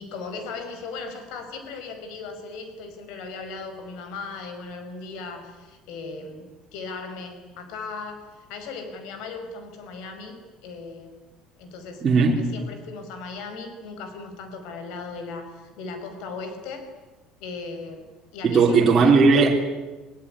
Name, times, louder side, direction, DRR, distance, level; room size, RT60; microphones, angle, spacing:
voice 1, 0.0-6.4 6.7-8.2 8.5-11.1 11.6-16.9 17.4-18.0 18.3-19.2, left 4 dB, 65° left, 7 dB, 5.2 m, -37 dB
voice 2, 12.0-12.5 18.4-19.6, right 4 dB, 25° right, -2 dB, 3.5 m, -17 dB
24.5 x 24.0 x 9.9 m, 1.2 s
cardioid pair, 175°, 0 cm